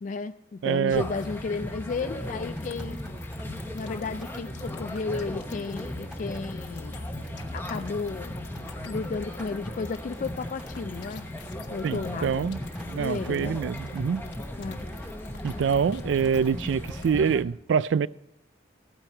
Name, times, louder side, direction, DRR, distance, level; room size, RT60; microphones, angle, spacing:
voice 1, 0.0-3.0 3.7-7.0 7.5-8.4 8.9-11.2 11.7-12.5 13.0-13.6 14.6-14.8, left 4 dB, 40° left, 0.3 m, -33 dB
voice 2, 0.6-1.0 11.8-12.6 12.9-14.2 15.4-18.1, right 6 dB, 70° right, 0.3 m, -25 dB
sound 1, 0.9-17.4, left 1 dB, 10° left, 0.9 m, -37 dB
Rain, 1.2-17.0, equal, 5° right, 2.5 m, -52 dB
sound 2, 2.6-17.3, left 9 dB, 70° left, 1.0 m, -51 dB
15.0 x 9.1 x 4.4 m
head